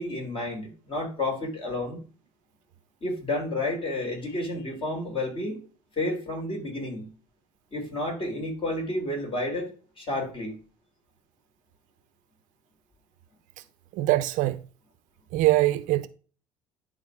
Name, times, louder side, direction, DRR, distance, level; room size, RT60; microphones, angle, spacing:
voice 1, 0.0-2.0 3.0-5.6 6.0-7.1 7.7-10.6, left 1 dB, 40° left, 4.0 m, -31 dB
voice 2, 14.0-14.6 15.3-16.1, right 16 dB, 65° right, 0.6 m, -22 dB
10.5 x 3.7 x 5.0 m
hypercardioid pair, 65°, 15 cm